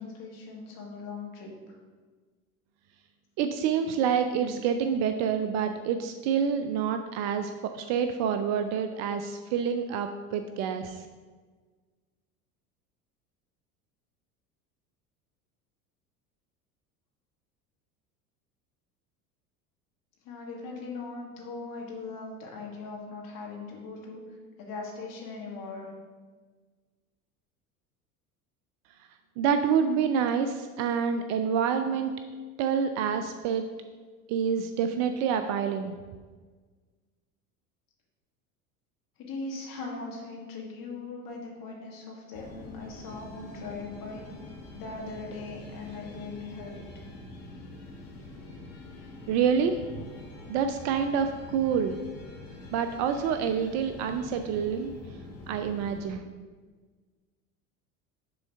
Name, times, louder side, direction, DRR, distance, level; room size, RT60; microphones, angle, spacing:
voice 1, 0.0-1.5 20.2-24.2 24.6-25.9 39.2-44.2 44.7-46.9, left 3 dB, 45° left, -1 dB, 1.9 m, -40 dB
voice 2, 3.4-11.0 29.4-32.1 32.6-33.6 34.3-35.9 49.3-50.1 50.5-52.0 52.7-54.9 55.5-56.3, right 7 dB, 40° right, 8 dB, 0.4 m, -27 dB
sound 1, 42.3-56.1, left 2 dB, 65° left, 1.3 m, -45 dB
6.9 x 3.8 x 5.4 m, 1.4 s
figure-of-eight pair, 70°, 46 cm